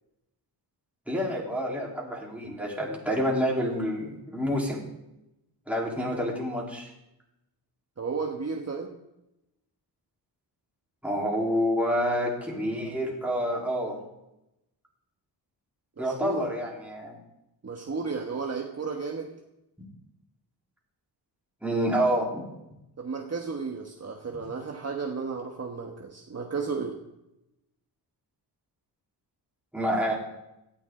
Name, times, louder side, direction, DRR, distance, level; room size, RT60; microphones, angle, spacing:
voice 1, 1.1-4.8 5.7-6.9 11.0-14.0 16.0-17.2 21.6-22.4 24.3-24.4 29.7-30.1, equal, 5° right, -3 dB, 3.8 m, -28 dB
voice 2, 8.0-8.9 16.0-16.5 17.6-19.3 23.0-27.0, right 4 dB, 35° right, 1 dB, 1.4 m, -33 dB
18.0 x 13.0 x 3.8 m, 0.89 s
wide cardioid pair, 120°, 42 cm